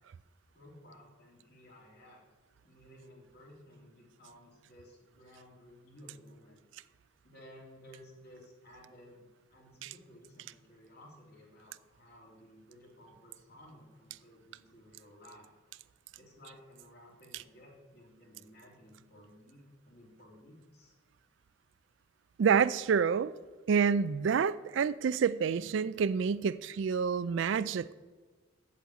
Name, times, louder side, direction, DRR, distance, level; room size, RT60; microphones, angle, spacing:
voice 1, 0.5-2.2 2.6-6.6 7.2-15.5 16.1-20.9, equal, 50° left, 3.0 m, -56 dB
voice 2, 22.4-23.3 23.7-27.9, right 6 dB, 70° right, 0.3 m, -28 dB
8.2 x 7.8 x 8.3 m
head